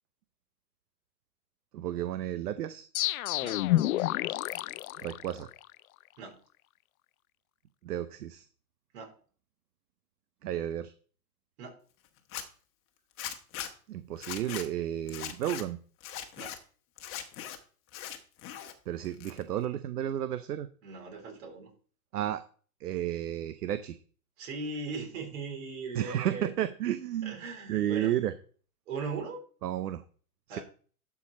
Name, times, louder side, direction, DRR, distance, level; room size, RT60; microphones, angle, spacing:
voice 1, 1.7-2.9 5.0-5.5 7.8-8.5 10.4-10.9 13.9-15.8 18.9-20.7 22.1-22.4 22.8-24.0 25.9-27.4 27.7-28.3 29.6-30.0 30.5-30.6, right 12 dB, 80° right, 13 dB, 0.7 m, -32 dB
sound 1, 2.9-5.7, left 15 dB, 65° left, 0.5 m, -29 dB
Zipper (clothing), 12.2-12.4 13.2-13.7 14.2-14.6 15.1-15.6 16.0-16.6 17.0-17.6 17.9-18.7 19.0-19.6, left 11 dB, 30° left, 1.2 m, -39 dB
voice 2, 20.8-21.7 24.4-26.5 27.2-28.1 28.9-29.4 30.5-30.6, right 4 dB, 60° right, 1 dB, 4.1 m, -39 dB
12.0 x 4.7 x 4.2 m, 0.42 s
hypercardioid pair, 120°, 46 cm